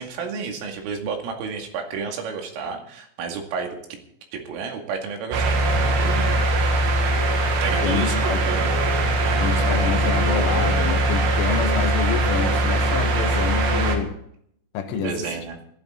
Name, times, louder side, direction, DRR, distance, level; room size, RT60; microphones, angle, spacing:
voice 1, 0.0-3.7 4.3-6.3 7.6-8.7 9.2-9.4 13.1-13.2 14.9-15.6, right 5 dB, 90° right, 3 dB, 4.9 m, -31 dB
sound 1, 5.3-14.0, right 2 dB, 60° right, 3.8 m, -21 dB
voice 2, 7.8-8.4 9.4-14.2 14.7-15.2, left 8 dB, 80° left, 5 dB, 3.9 m, -27 dB
18.5 x 13.0 x 3.9 m, 0.69 s
omnidirectional pair, 5.7 m